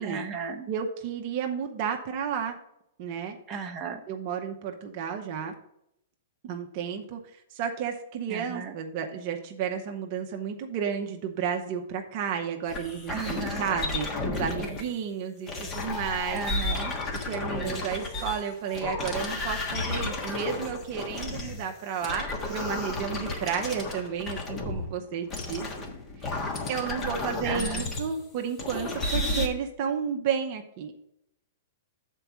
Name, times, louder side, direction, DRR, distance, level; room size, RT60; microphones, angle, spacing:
voice 1, 0.0-0.7 3.5-4.0 8.3-8.7 13.1-13.6 16.3-16.9 27.4-27.9, right 5 dB, 20° right, 1 dB, 1.0 m, -35 dB
voice 2, 0.7-2.6 3.0-3.4 4.1-5.5 6.4-16.5 17.2-25.9 26.7-30.9, right 7 dB, 45° right, 3 dB, 0.8 m, -32 dB
sound 1, 12.7-14.8 15.5-21.6 22.0-24.8 25.3-28.2 28.6-29.5, left 2 dB, 25° left, 1.4 m, -32 dB
6.7 x 4.6 x 6.2 m, 0.78 s
hypercardioid pair, 125°, 0 cm